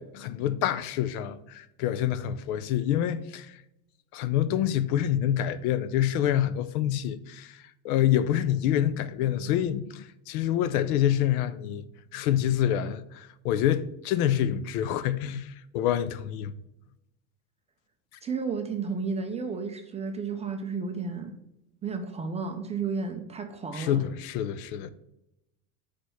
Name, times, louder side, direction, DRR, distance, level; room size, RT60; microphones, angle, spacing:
voice 1, 0.0-3.6 4.1-11.8 12.1-16.5 23.7-24.9, left 11 dB, 80° left, 0.6 m, -27 dB
voice 2, 18.2-21.3 21.8-24.0, right 5 dB, 15° right, 0.3 m, -32 dB
6.1 x 3.3 x 5.4 m
supercardioid pair, 135°, 43 cm